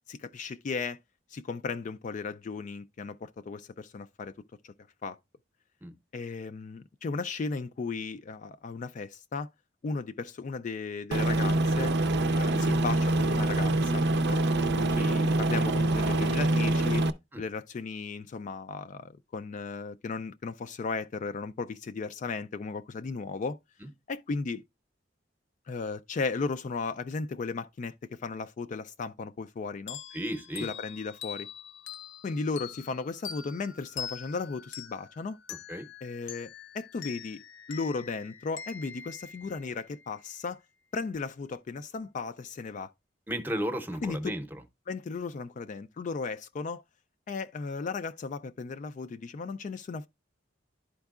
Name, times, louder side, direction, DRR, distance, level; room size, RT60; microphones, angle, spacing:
voice 1, 0.1-1.0 1.3-4.3 4.6-4.7 5.0-5.2 6.1-9.5 9.8-11.9 12.3-14.4 14.8-17.1 17.4-23.6 24.1-24.6 25.7-30.0 30.6-31.5 32.2-35.4 36.0-36.5 36.7-37.4 37.7-40.6 40.9-42.9 44.0-44.4 44.9-46.8 47.3-50.1, left 4 dB, 40° left, 0.3 m, -35 dB
Aircraft, 11.1-17.1, right 2 dB, 60° right, 0.5 m, -25 dB
sound 1, 29.9-40.1, left 8 dB, 90° left, 0.7 m, -44 dB
voice 2, 30.1-30.7 35.7-35.9 43.3-44.6, equal, 10° right, 0.7 m, -34 dB
11.5 x 4.5 x 2.3 m
head